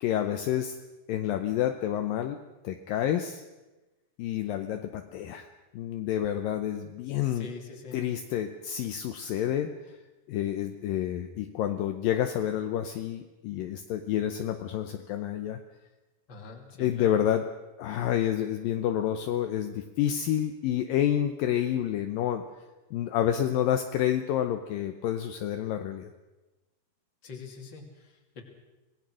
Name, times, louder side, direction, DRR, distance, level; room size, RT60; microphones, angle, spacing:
voice 1, 0.0-0.8 1.1-2.4 2.6-3.4 4.2-5.5 5.7-7.5 7.9-9.7 10.3-15.6 16.8-17.4 17.8-22.4 22.9-26.1, left 11 dB, 75° left, 7 dB, 2.5 m, -29 dB
voice 2, 7.2-8.1 16.3-17.2 27.2-28.4, left 5 dB, 30° left, 3 dB, 3.1 m, -44 dB
26.5 x 18.5 x 6.3 m, 1.1 s
omnidirectional pair, 4.4 m